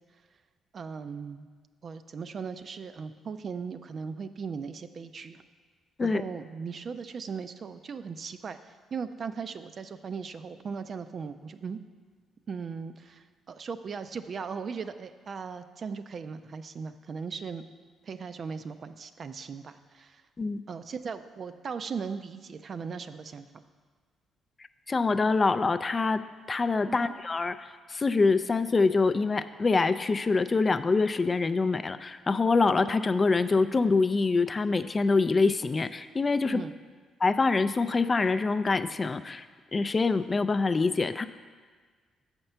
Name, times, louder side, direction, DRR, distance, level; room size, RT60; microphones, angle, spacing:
voice 1, 0.7-1.5 1.8-5.4 6.0-11.8 12.5-17.6 18.0-20.2 20.7-23.6 26.9-27.0 36.5-36.7, right 5 dB, 50° right, 10 dB, 0.4 m, -38 dB
voice 2, 24.9-26.2 26.5-36.6 37.2-39.4 39.7-41.2, left 4 dB, 30° left, 11 dB, 0.3 m, -25 dB
7.1 x 4.4 x 6.6 m, 1.5 s
cardioid pair, 90°, 0 cm